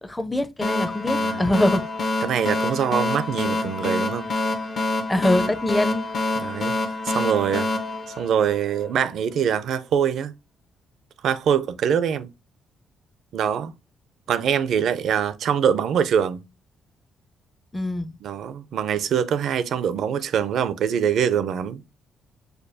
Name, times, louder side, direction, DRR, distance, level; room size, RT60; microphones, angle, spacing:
voice 1, 0.0-1.9 5.1-6.1 17.7-18.1, left 1 dB, 10° left, 0.6 m, -23 dB
sound 1, 0.6-8.9, left 2 dB, 50° left, 0.9 m, -27 dB
voice 2, 2.2-4.3 6.4-6.7 7.0-7.7 8.2-10.3 11.2-12.3 13.3-13.7 14.3-16.4 18.2-21.8, right 8 dB, 70° right, 0.5 m, -23 dB
6.6 x 2.3 x 2.7 m
cardioid pair, 90°, 0 cm